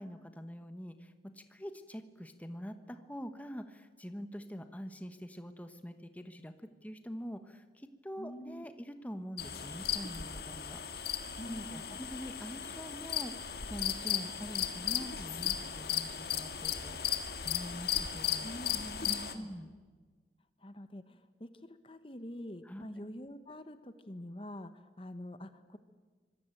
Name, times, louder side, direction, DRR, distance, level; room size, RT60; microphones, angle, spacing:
voice 1, 0.0-11.2 11.4-18.6 19.0-19.7 22.6-22.8, equal, 10° left, 8 dB, 1.2 m, -45 dB
voice 2, 8.2-8.6 11.4-12.0 18.4-19.5 20.6-25.8, equal, 30° left, 10 dB, 1.2 m, -46 dB
sound 1, 9.4-19.3, left 9 dB, 60° left, 1.9 m, -36 dB
26.0 x 22.0 x 9.1 m, 1.5 s
head